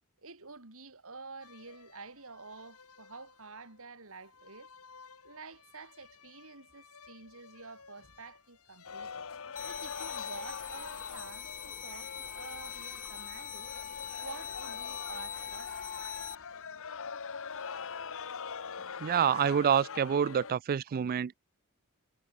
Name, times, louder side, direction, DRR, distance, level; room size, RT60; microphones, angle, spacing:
voice 1, 0.2-4.7 5.2-9.3 9.6-13.7 14.2-15.8, right 4 dB, 65° right, 4.3 m, -49 dB
sound 1, 1.4-16.6, left 5 dB, 85° left, 2.9 m, -57 dB
sound 2, 8.8-20.5, left 6 dB, 65° left, 1.1 m, -43 dB
sound 3, 9.6-16.4, left 8 dB, 35° left, 1.2 m, -41 dB
voice 2, 19.0-21.3, right 8 dB, 40° right, 0.3 m, -27 dB
head